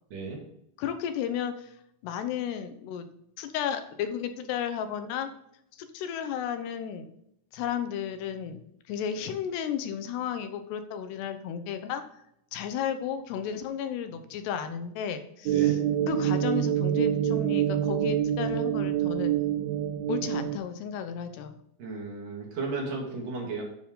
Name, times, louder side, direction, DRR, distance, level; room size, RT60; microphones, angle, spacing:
voice 1, 0.1-0.4 15.5-15.8 21.8-23.6, right 3 dB, 55° right, -2 dB, 3.8 m, -34 dB
voice 2, 0.8-1.7 2.0-3.1 3.4-5.3 5.8-7.1 7.5-8.6 8.9-12.0 12.5-15.8 16.1-19.3 20.1-21.6, left 8 dB, 85° left, 8 dB, 3.1 m, -33 dB
sound 1, 15.5-20.6, right 11 dB, 80° right, 2.2 m, -26 dB
9.6 x 7.2 x 3.9 m, 0.75 s
omnidirectional pair, 4.7 m